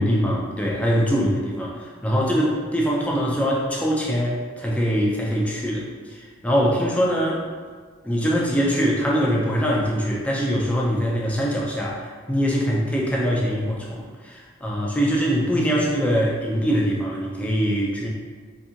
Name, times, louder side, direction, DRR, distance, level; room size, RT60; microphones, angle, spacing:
voice 1, 0.0-7.4 8.0-18.1, equal, 5° left, -4 dB, 0.4 m, -23 dB
2.8 x 2.6 x 2.4 m, 1.5 s
head